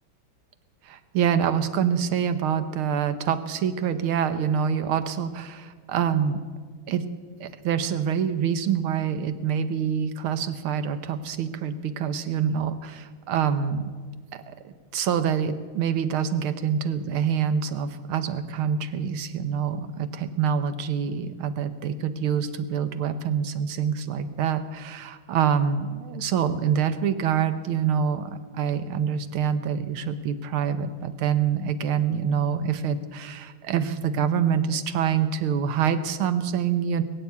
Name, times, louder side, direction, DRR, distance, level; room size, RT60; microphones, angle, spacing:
voice 1, 0.9-6.4 6.9-7.1 7.4-13.9 14.5-37.0, right 8 dB, 90° right, 11 dB, 1.8 m, -26 dB
21.0 x 8.2 x 8.4 m, 1.5 s
omnidirectional pair, 2.3 m